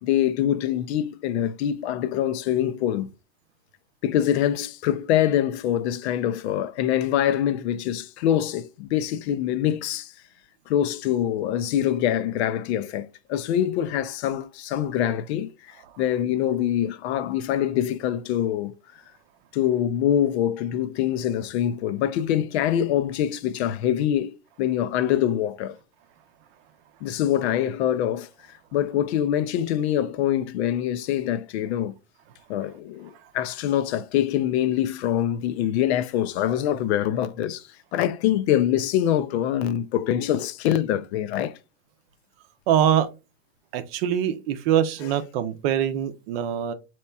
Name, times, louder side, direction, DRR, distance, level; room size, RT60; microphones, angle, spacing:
voice 1, 0.0-3.1 4.0-10.1 10.7-18.7 19.5-25.8 27.0-28.3 28.7-31.9 32.5-41.6, left 11 dB, 55° left, 0.5 m, -24 dB
voice 2, 42.7-43.1 43.7-46.7, right 10 dB, 50° right, 0.6 m, -23 dB
4.2 x 2.9 x 2.2 m
supercardioid pair, 140°, 39 cm